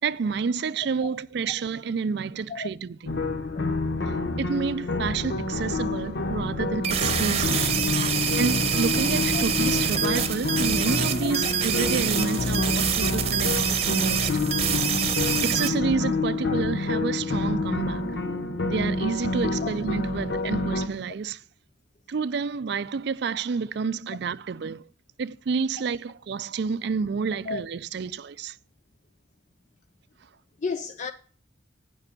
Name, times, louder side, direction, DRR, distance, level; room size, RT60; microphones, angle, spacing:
voice 1, 0.0-3.1 4.4-7.6 8.4-14.3 15.4-18.2 18.7-21.4 22.1-24.9 25.2-28.6, right 5 dB, 60° right, 0.4 m, -29 dB
sound 1, 3.1-20.9, left 3 dB, 60° left, 0.9 m, -28 dB
voice 2, 3.5-3.8 9.3-9.4 10.2-10.3 11.2-11.3 16.4-16.5 19.6-19.7 27.5-27.6 30.6-31.1, left 4 dB, 40° left, 0.4 m, -32 dB
sound 2, 6.8-15.7, right 8 dB, 35° right, 0.9 m, -26 dB
9.0 x 5.4 x 6.8 m
head